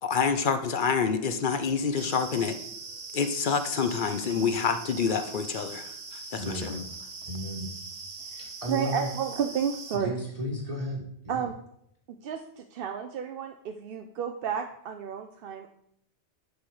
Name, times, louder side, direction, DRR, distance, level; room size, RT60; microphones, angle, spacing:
voice 1, 0.0-2.6 3.1-6.9, left 6 dB, 50° left, 9 dB, 0.8 m, -27 dB
sound 1, 1.9-10.0, right 4 dB, 85° right, 1.3 m, -42 dB
voice 2, 6.3-6.9 7.3-7.7 8.4-9.1 9.9-11.5, equal, 30° right, -3 dB, 1.4 m, -34 dB
voice 3, 8.7-10.1 11.3-11.5 12.2-15.7, right 8 dB, 60° right, 5 dB, 0.7 m, -31 dB
11.0 x 4.3 x 4.8 m, 0.73 s
omnidirectional pair, 1.2 m